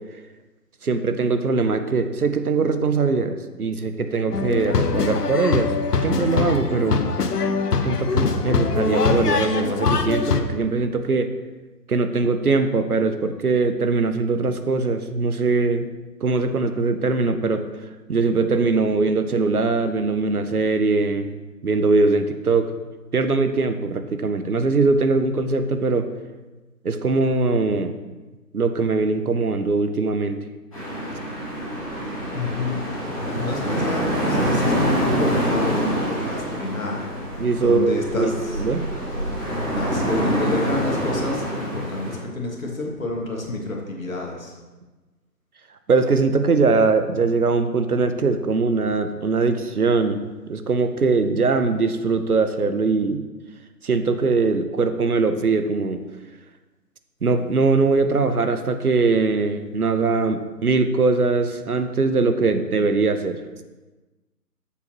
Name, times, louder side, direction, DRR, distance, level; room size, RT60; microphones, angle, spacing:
voice 1, 0.8-5.7 6.0-7.1 7.8-11.3 11.9-15.9 16.2-17.6 18.1-21.3 21.6-22.7 23.1-26.1 26.8-27.9 28.5-30.4 37.4-38.9 45.9-53.2 53.8-56.0 57.2-63.4, right 4 dB, 60° right, 9 dB, 0.7 m, -21 dB
sound 1, 4.3-10.4, left 4 dB, 70° left, 0.8 m, -22 dB
sound 2, 30.7-42.2, equal, 20° left, 2.3 m, -26 dB
voice 2, 32.3-32.9 33.3-38.6 39.7-44.6, left 3 dB, 50° left, -1 dB, 1.7 m, -29 dB
9.1 x 7.0 x 2.9 m, 1.2 s
figure-of-eight pair, 180°, 50 cm